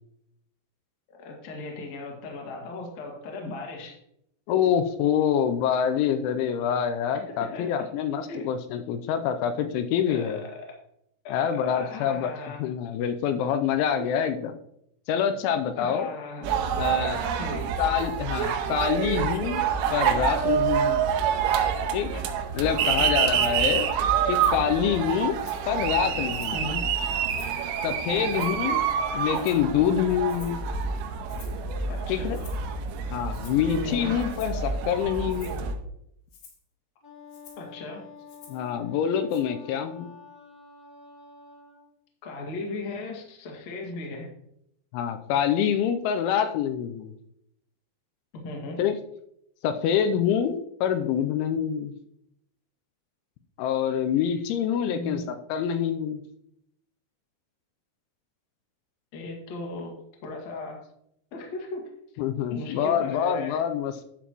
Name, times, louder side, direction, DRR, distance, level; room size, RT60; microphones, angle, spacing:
voice 1, 1.1-4.0 4.5-4.7 7.5-7.7 8.3-8.5 10.1-10.7 11.2-12.6 14.0-14.1 15.8-16.5 17.4-17.6 22.1-22.3 22.8-23.1 26.5-26.8 28.2-28.5 31.9-32.3 33.8-34.1 37.6-38.0 42.2-44.3 48.3-48.8 54.2-54.4 54.8-55.2 59.1-59.9 60.2-60.8 61.3-61.8 62.5-63.6, left 3 dB, 55° left, 0 dB, 2.1 m, -37 dB
voice 2, 4.5-10.4 11.3-12.3 12.6-14.6 15.1-16.1 16.8-17.2 17.8-19.6 19.9-21.0 21.9-22.1 22.5-23.9 24.3-25.4 25.7-26.7 27.8-28.8 29.1-30.6 32.1-32.4 33.1-35.6 38.5-40.1 44.9-47.1 48.8-49.0 49.6-51.9 53.6-56.2 62.2-64.0, left 8 dB, 85° left, 8 dB, 3.0 m, -26 dB
sound 1, 16.4-35.7, right 7 dB, 85° right, 3.3 m, -27 dB
Rattle (instrument), 23.4-23.6 24.3-24.7 25.1-25.7 26.3-26.7 27.3-27.7 28.3-28.7 29.3-29.7 30.3-30.6 31.3-31.7 32.3-32.7 33.3-33.7 34.3-34.6 35.3-35.6 36.3-36.6 37.3-37.7 38.3-38.7 39.3-39.4, left 6 dB, 70° left, 3.9 m, -51 dB
Wind instrument woodwind instrument, 37.0-41.9, left 5 dB, 5° left, 1.7 m, -48 dB
11.0 x 7.2 x 3.0 m, 0.74 s
omnidirectional pair, 5.5 m